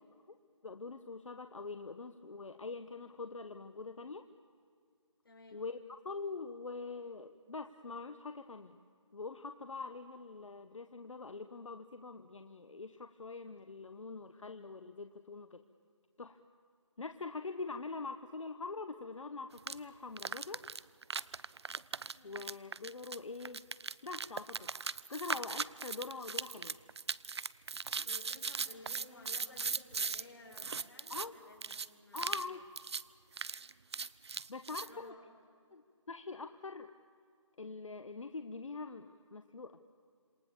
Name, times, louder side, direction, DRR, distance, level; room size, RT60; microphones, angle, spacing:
voice 1, 0.6-4.3 5.5-5.8 6.0-8.8 9.1-15.6 16.2-16.4 17.0-20.7 22.2-23.7 24.0-26.8 31.1-31.3 32.1-32.7 34.5-35.1 35.7-35.8 36.1-36.9 37.6-39.8, left 4 dB, 75° left, 8 dB, 1.3 m, -44 dB
voice 2, 5.2-5.6 22.1-22.3 27.9-32.6 34.4-35.3, left 2 dB, 45° left, 1 dB, 5.8 m, -56 dB
sound 1, 19.6-19.8 20.2-30.2 30.5-31.3 31.6-31.9 32.2-32.5 32.8-33.0 33.3-34.9, right 5 dB, 55° right, 0.6 m, -39 dB
27.5 x 27.5 x 7.2 m, 2.2 s
figure-of-eight pair, 165°, 16 cm